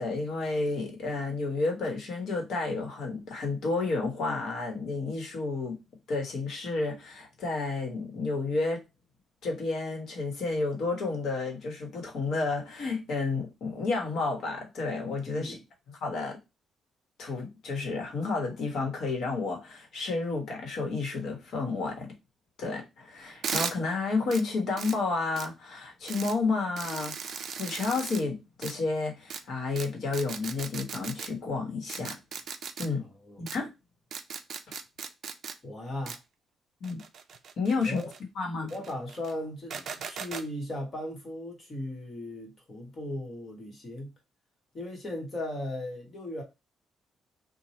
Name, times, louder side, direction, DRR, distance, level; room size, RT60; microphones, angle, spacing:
voice 1, 0.0-5.8 6.1-8.8 9.4-15.6 15.9-16.4 17.2-22.1 22.6-32.2 32.8-33.1 33.4-33.7 36.8-37.0 37.6-38.0 38.4-38.7, left 3 dB, 60° left, 1.1 m, -31 dB
sound 1, 23.4-23.7 24.3-24.4 24.8-25.0 25.4-25.5 26.1-26.3 26.8-28.2 28.6-28.7 29.3-29.4 29.8-29.9 30.1-31.3 31.9-32.9 33.5-33.6 34.1-35.5 36.1-36.2 36.8-38.2 38.7-39.3 39.7-40.4, right 6 dB, 50° right, 0.4 m, -37 dB
voice 2, 33.0-33.4 35.6-36.2 37.8-38.1 38.7-44.1 44.7-46.4, left 1 dB, 30° left, 1.2 m, -37 dB
3.0 x 2.2 x 4.1 m
cardioid pair, 150°, 0 cm